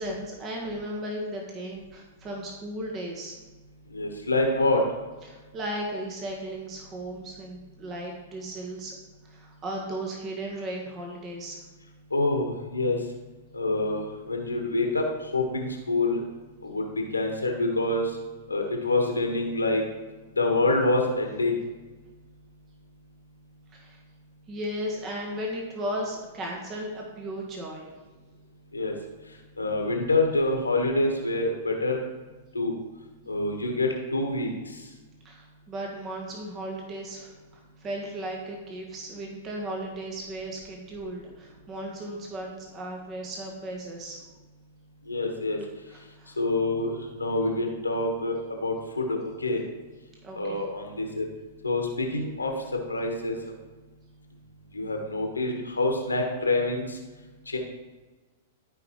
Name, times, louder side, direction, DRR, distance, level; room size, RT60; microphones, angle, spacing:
voice 1, 0.0-3.4 5.2-8.9 9.2-11.6 23.7-24.0 24.5-27.9 35.2-37.3 37.8-44.2 45.9-46.4 50.2-50.6, right 1 dB, 25° right, 0 dB, 1.5 m, -35 dB
voice 2, 3.9-4.8 12.1-13.0 13.5-16.2 16.6-16.8 17.1-18.1 18.5-19.8 20.4-21.6 28.7-28.9 29.6-32.0 32.5-32.7 33.3-34.5 45.1-45.6 46.4-49.6 50.3-51.3 51.6-52.5 52.9-53.3 54.7-57.0 57.5-57.6, left 2 dB, 80° left, 2 dB, 1.5 m, -26 dB
13.0 x 5.2 x 3.2 m, 1.2 s
figure-of-eight pair, 100°, 0 cm